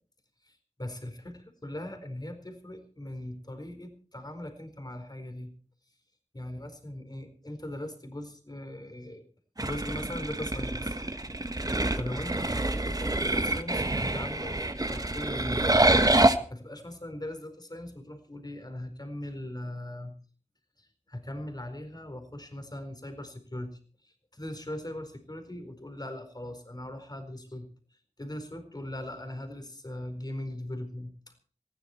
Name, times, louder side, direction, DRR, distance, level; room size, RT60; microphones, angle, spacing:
voice 1, 0.4-5.5 6.3-9.2 9.6-11.0 12.0-15.8 16.5-20.1 20.8-27.7 28.2-31.3, left 1 dB, 35° left, 7 dB, 4.3 m, -40 dB
sound 1, 9.6-16.4, right 2 dB, 35° right, 1.4 m, -26 dB
19.5 x 15.0 x 4.4 m, 0.41 s
wide cardioid pair, 55°, 12 cm